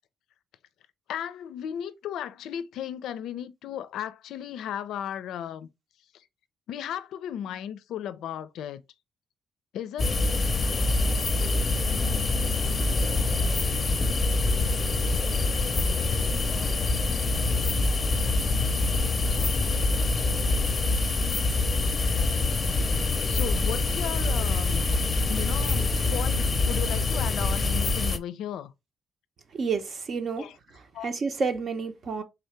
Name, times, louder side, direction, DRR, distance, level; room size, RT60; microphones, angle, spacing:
voice 1, 1.1-5.7 6.1-6.2 6.7-8.8 9.7-10.0 23.2-24.9 25.3-28.7 30.4-30.6 30.9-31.1, left 10 dB, 80° left, 0.4 m, -35 dB
sound 1, 10.0-28.2, left 3 dB, 35° left, 0.6 m, -25 dB
voice 2, 29.5-30.5 30.7-32.2, right 5 dB, 50° right, 0.8 m, -30 dB
3.8 x 2.8 x 3.2 m
cardioid pair, 90°, 0 cm